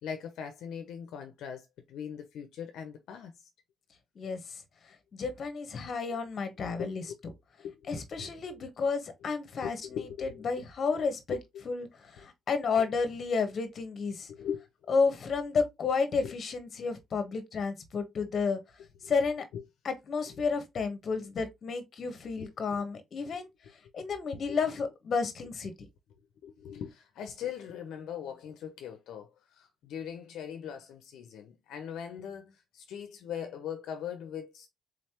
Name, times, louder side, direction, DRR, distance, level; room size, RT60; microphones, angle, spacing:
voice 1, 0.0-3.3 6.8-7.1 7.6-8.3 9.6-10.4 11.3-11.6 14.3-15.0 16.2-16.3 19.5-19.6 22.4-22.8 24.0-24.1 24.3-24.6 26.4-34.7, left 8 dB, 80° left, 0.7 m, -41 dB
voice 2, 5.1-7.0 7.9-11.4 11.7-14.3 14.9-18.6 19.0-19.4 19.8-23.5 23.9-25.7, left 5 dB, 50° left, 1.1 m, -31 dB
4.0 x 3.2 x 2.9 m
cardioid pair, 90°, 0 cm